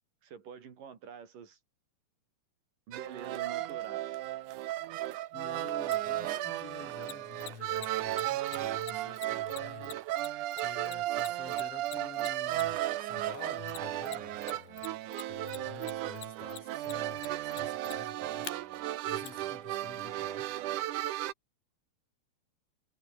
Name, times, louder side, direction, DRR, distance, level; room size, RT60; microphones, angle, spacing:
voice 1, 0.2-1.6 2.9-4.2, right 7 dB, 55° right, 4.1 m, -47 dB
sound 1, 2.9-21.3, right 14 dB, 70° right, 2.0 m, -35 dB
voice 2, 5.3-10.0 10.6-14.9 15.3-18.6 19.1-20.5, left 5 dB, 45° left, 2.5 m, -49 dB
Mechanisms, 5.9-6.0 7.0-12.9 13.7-14.5 14.8-18.5 19.2-19.3, left 12 dB, 70° left, 3.5 m, -45 dB
omnidirectional pair, 4.7 m